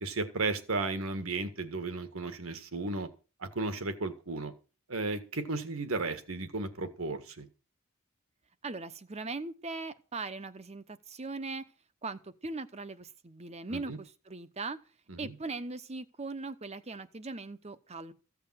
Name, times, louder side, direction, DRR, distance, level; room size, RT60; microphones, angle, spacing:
voice 1, 0.0-3.1 3.4-4.5 4.9-7.5 13.7-14.0 15.1-15.3, right 3 dB, 70° right, 1.8 m, -34 dB
voice 2, 8.6-11.7 12.0-14.8 15.2-18.1, right 3 dB, 30° right, 0.9 m, -40 dB
15.0 x 6.9 x 7.7 m
head